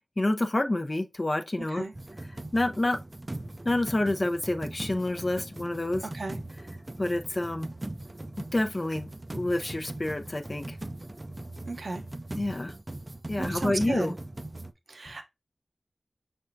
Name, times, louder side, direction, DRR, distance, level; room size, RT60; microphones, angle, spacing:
voice 1, 0.2-1.8 2.5-3.0 3.6-6.1 7.0-7.7 8.5-10.8 12.4-12.7 13.3-14.1, left 1 dB, 40° left, 0.5 m, -28 dB
voice 2, 1.6-1.9 6.1-6.4 11.7-12.0 13.4-14.2 14.9-15.3, right 3 dB, 75° right, 0.8 m, -34 dB
sound 1, 1.9-14.7, right 1 dB, 35° right, 0.5 m, -40 dB
5.6 x 3.4 x 2.6 m
cardioid pair, 40°, 0 cm